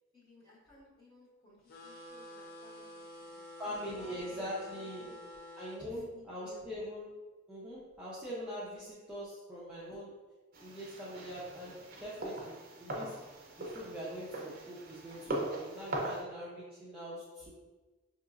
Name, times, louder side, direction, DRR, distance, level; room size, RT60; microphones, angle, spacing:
voice 1, 0.1-4.4 5.1-5.2 5.8-6.6, left 1 dB, 20° left, -9 dB, 1.3 m, -57 dB
sound 1, 1.7-5.8, left 1 dB, 45° left, 0.6 m, -49 dB
voice 2, 3.6-5.1 5.6-7.1 7.5-10.1 10.6-12.5 12.8-13.1 13.6-17.5, equal, 5° right, -10 dB, 0.5 m, -42 dB
sound 2, 10.5-16.2, right 1 dB, 45° right, 0.6 m, -41 dB
5.1 x 2.8 x 2.4 m, 1.3 s
head